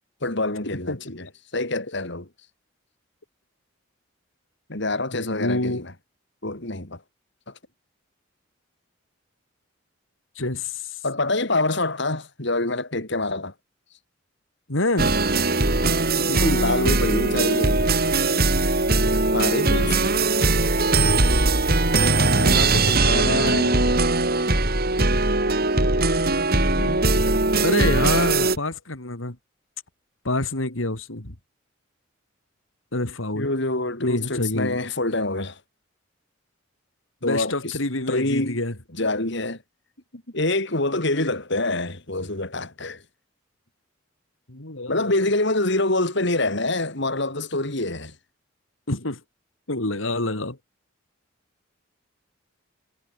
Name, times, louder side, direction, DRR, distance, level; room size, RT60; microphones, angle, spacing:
voice 1, 0.2-1.3 1.5-2.3 4.7-5.9 6.4-7.0 11.0-13.5 15.8-17.8 19.3-20.2 22.4-23.9 26.7-27.0 27.3-27.4 33.4-35.6 37.2-37.8 38.1-38.6 38.9-39.6 40.1-43.0 44.9-48.1, left 2 dB, 60° left, 3.9 m, -26 dB
voice 2, 5.1-5.9 10.4-11.0 14.7-15.1 27.6-29.4 30.2-31.3 32.9-33.5 34.0-34.8 37.2-38.8 44.5-45.2 48.9-49.2 49.7-50.6, left 2 dB, 80° left, 3.6 m, -27 dB
sound 1, 15.0-28.6, right 2 dB, 50° right, 4.1 m, -20 dB
head